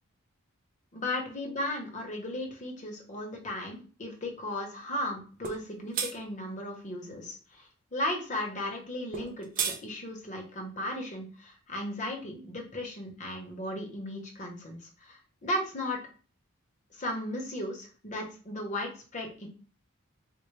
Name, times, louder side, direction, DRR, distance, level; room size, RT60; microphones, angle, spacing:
voice 1, 0.9-16.0 16.9-19.5, left 1 dB, 35° left, 1 dB, 0.9 m, -36 dB
sound 1, 5.4-5.6 5.9-6.1 9.1-9.8, right 6 dB, 40° right, 0.5 m, -31 dB
4.3 x 2.1 x 3.1 m, 0.39 s
head